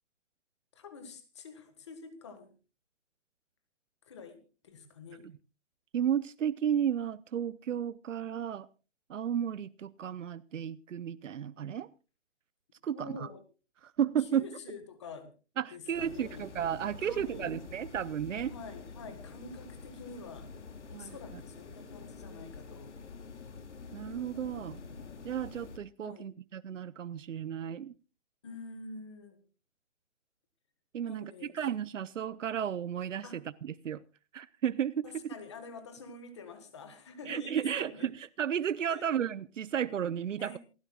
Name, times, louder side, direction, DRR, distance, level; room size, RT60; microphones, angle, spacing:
voice 1, 0.7-2.5 4.1-5.3 12.9-13.4 14.2-15.3 15.7-16.4 17.0-17.6 18.4-20.5 20.9-22.9 26.0-26.3 28.4-29.4 31.0-31.5 33.2-33.5 35.0-38.1 38.9-39.1 40.4-40.6, left 4 dB, 25° left, 1.6 m, -47 dB
voice 2, 5.9-8.7 9.1-11.9 12.8-13.3 13.8-14.4 15.6-18.5 20.9-21.2 23.9-24.8 25.2-27.9 30.9-34.0 34.3-35.3 37.3-40.6, right 9 dB, 85° right, 0.8 m, -33 dB
sound 1, 15.9-25.8, left 4 dB, 70° left, 2.5 m, -47 dB
28.0 x 10.5 x 2.4 m
hypercardioid pair, 180°, 36 cm